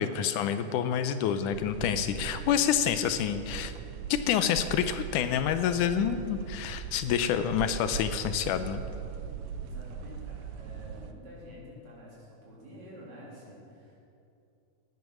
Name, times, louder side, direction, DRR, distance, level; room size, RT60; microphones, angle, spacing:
voice 1, 0.0-3.7 4.1-8.8, left 9 dB, 80° left, 10 dB, 2.1 m, -28 dB
sound 1, 1.5-11.1, right 7 dB, 80° right, 2.2 m, -40 dB
voice 2, 9.6-14.0, equal, 60° right, -5 dB, 4.8 m, -49 dB
17.5 x 9.5 x 6.2 m, 2.6 s
omnidirectional pair, 3.7 m